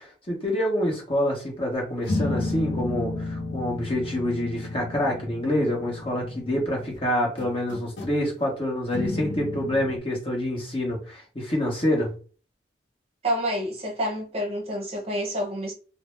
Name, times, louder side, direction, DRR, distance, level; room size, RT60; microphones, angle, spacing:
voice 1, 0.0-12.1, left 1 dB, 30° left, 1.0 m, -27 dB
sound 1, 2.0-7.0 7.4-8.2 8.9-10.0, left 2 dB, 75° left, 0.6 m, -32 dB
voice 2, 13.2-15.7, equal, 35° right, 0.8 m, -28 dB
2.5 x 2.0 x 3.2 m
head